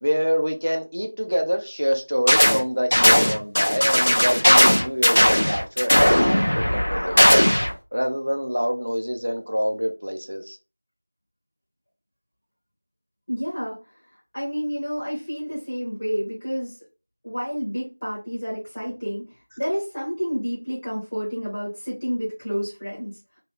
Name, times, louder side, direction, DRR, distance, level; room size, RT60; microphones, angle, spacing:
voice 1, 0.0-7.4 7.9-10.6, equal, 55° right, 0.5 m, -26 dB
sound 1, 2.3-2.6 2.9-7.7, equal, 25° left, 0.3 m, -17 dB
voice 2, 13.3-16.7 17.2-19.2 19.6-23.1, equal, 10° left, 0.7 m, -29 dB
2.3 x 2.3 x 3.3 m
figure-of-eight pair, 180°, 0 cm